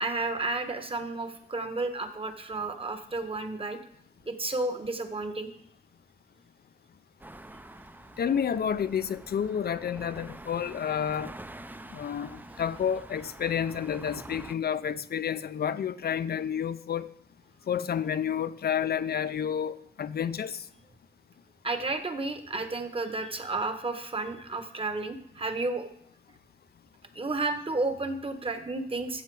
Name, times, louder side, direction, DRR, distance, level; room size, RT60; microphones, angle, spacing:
voice 1, 0.0-3.8 4.3-5.5 21.6-25.9 27.1-29.2, right 3 dB, 30° right, 1.2 m, -32 dB
sound 1, 7.2-14.5, right 1 dB, 10° right, 0.5 m, -46 dB
voice 2, 8.2-11.3 11.9-17.1 17.7-20.6, left 8 dB, 65° left, 0.5 m, -30 dB
14.0 x 5.7 x 4.7 m
wide cardioid pair, 85°, 17 cm